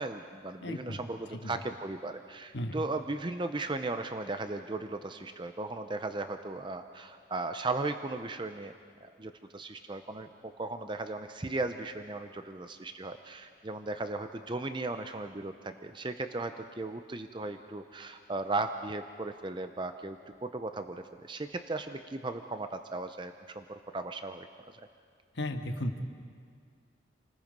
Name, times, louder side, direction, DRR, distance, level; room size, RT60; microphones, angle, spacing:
voice 1, 0.0-8.7 9.0-24.8, right 2 dB, 25° right, 8 dB, 0.6 m, -37 dB
voice 2, 0.6-1.0 1.4-1.6 2.5-2.8 25.3-26.0, left 1 dB, 65° left, 4 dB, 1.5 m, -35 dB
28.5 x 19.5 x 5.3 m, 2.2 s
head